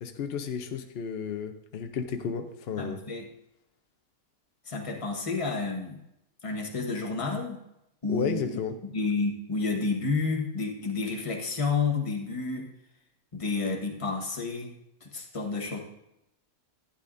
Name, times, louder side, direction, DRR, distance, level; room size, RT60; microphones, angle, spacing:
voice 1, 0.0-3.0 8.1-8.8, left 6 dB, 60° left, 5 dB, 0.7 m, -32 dB
voice 2, 2.8-3.3 4.6-6.0 6.4-7.6 8.0-12.7 13.3-14.7 15.0-15.8, left 4 dB, 20° left, 1 dB, 1.2 m, -30 dB
11.5 x 9.8 x 2.6 m, 0.83 s
omnidirectional pair, 1.6 m